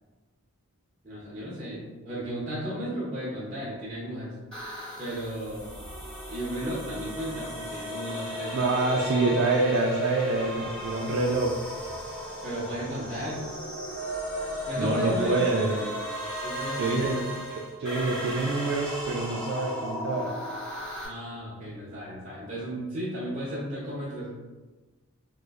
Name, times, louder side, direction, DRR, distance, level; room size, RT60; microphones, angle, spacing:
voice 1, 1.0-4.3 5.0-5.7 6.3-8.5 12.4-13.4 14.7-15.4 15.8-15.9 16.4-17.2 21.0-24.3, right 1 dB, 30° right, -9 dB, 0.8 m, -34 dB
sound 1, 4.5-21.1, equal, 5° left, 1.1 m, -35 dB
voice 2, 8.5-11.5 14.8-15.8 16.8-17.2 17.5-20.3, right 3 dB, 50° right, -1 dB, 0.3 m, -26 dB
3.1 x 2.1 x 3.4 m, 1.2 s
head